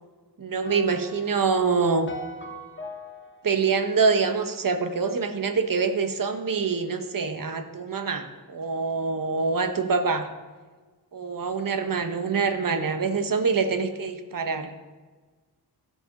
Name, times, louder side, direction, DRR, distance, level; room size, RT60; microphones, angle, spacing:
voice 1, 0.4-2.1 3.4-10.3 11.1-14.7, right 5 dB, 55° right, 8 dB, 0.9 m, -25 dB
sound 1, 0.7-5.0, left 2 dB, 30° left, 0.8 m, -41 dB
13.0 x 4.6 x 5.9 m, 1.4 s
wide cardioid pair, 115°, 39 cm